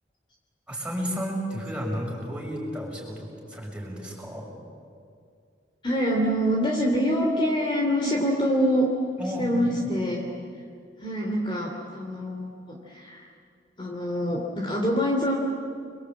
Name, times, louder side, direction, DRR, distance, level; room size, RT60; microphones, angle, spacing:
voice 1, 0.7-4.5 9.2-9.9, equal, 5° right, -2 dB, 6.6 m, -32 dB
voice 2, 5.8-8.9 9.4-10.2 11.0-13.3 13.8-15.3, equal, 25° left, -1 dB, 3.0 m, -25 dB
29.5 x 23.0 x 8.7 m, 2.3 s
head